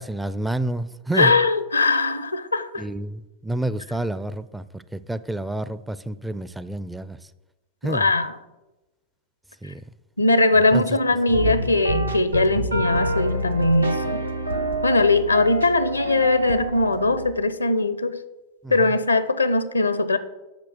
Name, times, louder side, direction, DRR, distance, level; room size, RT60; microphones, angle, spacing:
voice 1, 0.0-1.4 2.8-7.2 7.8-8.1 9.6-9.8 10.7-10.8 18.6-18.9, right 1 dB, 5° right, 0.4 m, -29 dB
voice 2, 1.1-2.8 7.9-8.3 9.6-9.7 10.2-14.2 14.8-18.2 18.7-20.2, left 2 dB, 80° left, 0.6 m, -20 dB
sound 1, 11.3-17.3, right 1 dB, 85° right, 0.9 m, -27 dB
8.2 x 6.0 x 6.4 m
figure-of-eight pair, 90°, 0 cm